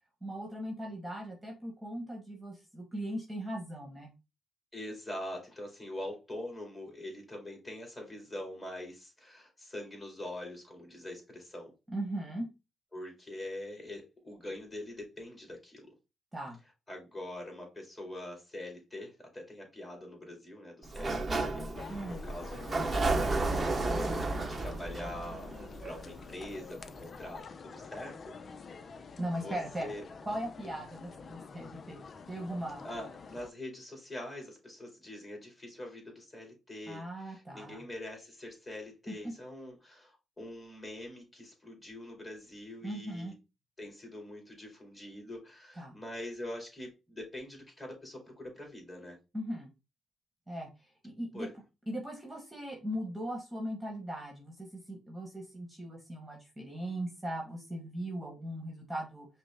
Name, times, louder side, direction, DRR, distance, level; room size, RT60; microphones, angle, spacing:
voice 1, 0.2-4.1 11.9-12.5 16.3-16.6 21.9-22.2 29.2-29.9 30.2-32.8 36.9-37.8 39.1-39.3 42.8-43.3 45.8-46.0 49.3-49.7 50.5-50.7 51.0-51.5 51.9-59.3, right 1 dB, 10° right, -1 dB, 1.3 m, -39 dB
voice 2, 4.7-11.7 12.9-15.9 16.9-25.5 25.8-28.2 28.5-28.8 29.4-30.0 32.8-43.3 43.8-49.2 51.3-51.5, left 1 dB, 20° left, 0 dB, 2.2 m, -44 dB
Sliding door, 20.8-26.5, right 2 dB, 30° right, 0.8 m, -32 dB
sound 1, 21.7-33.5, left 5 dB, 45° left, 0.4 m, -47 dB
5.3 x 2.0 x 3.4 m, 0.28 s
cardioid pair, 90°, 0 cm